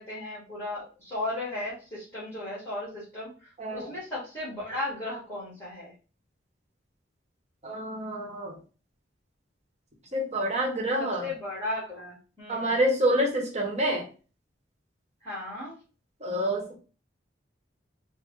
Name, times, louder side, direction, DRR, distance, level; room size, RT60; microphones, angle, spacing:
voice 1, 0.0-3.3 3.7-5.9 11.0-12.7 15.2-15.7, left 1 dB, 15° left, -9 dB, 1.6 m, -35 dB
voice 2, 3.6-3.9 7.6-8.6 10.1-11.3 12.5-14.1 16.2-16.8, right 1 dB, 40° right, 0 dB, 1.1 m, -27 dB
4.2 x 2.1 x 3.1 m, 0.35 s
head